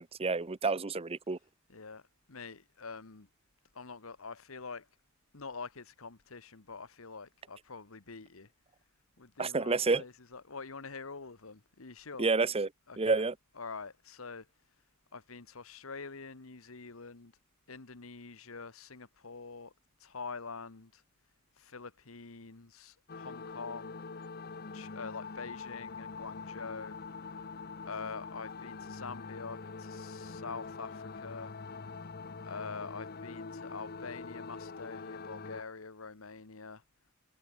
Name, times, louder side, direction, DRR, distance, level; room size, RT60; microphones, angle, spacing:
voice 1, 0.0-1.4 9.4-10.0 12.2-12.7 13.0-13.3, right 4 dB, 25° right, 0.7 m, -29 dB
voice 2, 1.7-3.3 3.7-4.9 5.3-8.5 9.2-12.3 12.9-13.2 13.6-14.8 15.1-17.3 17.7-19.7 20.0-21.0 21.5-24.0 24.7-27.0 27.2-27.3 27.8-31.5 32.4-36.8, left 4 dB, 75° left, 1.4 m, -45 dB
sound 1, 23.1-35.6, left 4 dB, 45° left, 0.9 m, -44 dB
head